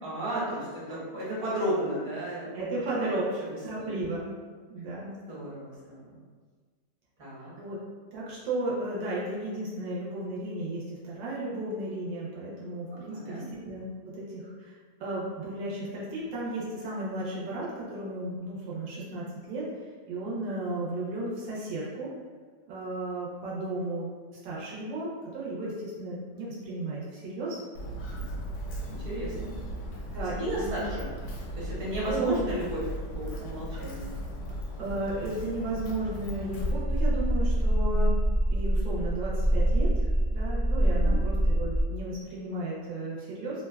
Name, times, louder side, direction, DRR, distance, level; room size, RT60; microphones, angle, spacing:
voice 1, 0.0-3.1 3.7-4.0 5.3-6.2 7.2-7.5 13.1-13.4 28.1-28.2 28.9-29.5 30.4-31.1 31.5-32.8 33.1-34.1 41.0-41.3, right 1 dB, 55° right, -8 dB, 1.4 m, -34 dB
voice 2, 2.5-3.2 3.6-4.3 4.7-5.2 7.6-7.8 8.1-19.7 20.1-22.1 22.6-24.1 24.4-27.6 30.1-30.8 32.0-32.4 33.7-34.0 34.8-38.1 38.5-43.6, right 2 dB, 85° right, -6 dB, 1.4 m, -34 dB
Walk footsteps, 27.7-36.7, equal, 70° left, 0.8 m, -37 dB
sound 1, 36.6-41.8, right 1 dB, 30° right, 0.4 m, -25 dB
3.3 x 2.2 x 2.2 m, 1.5 s
omnidirectional pair, 1.9 m